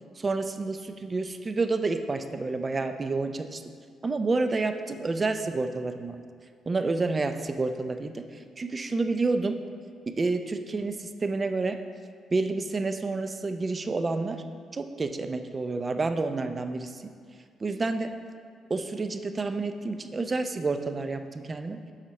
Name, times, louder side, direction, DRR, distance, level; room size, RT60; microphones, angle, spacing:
voice 1, 0.2-3.6 4.0-6.2 6.7-8.2 8.6-9.6 10.1-11.8 12.3-14.4 14.7-17.0 17.6-18.1 18.7-21.8, right 3 dB, 30° right, 8 dB, 0.5 m, -29 dB
7.4 x 4.3 x 5.3 m, 2.2 s
cardioid pair, 90°, 0 cm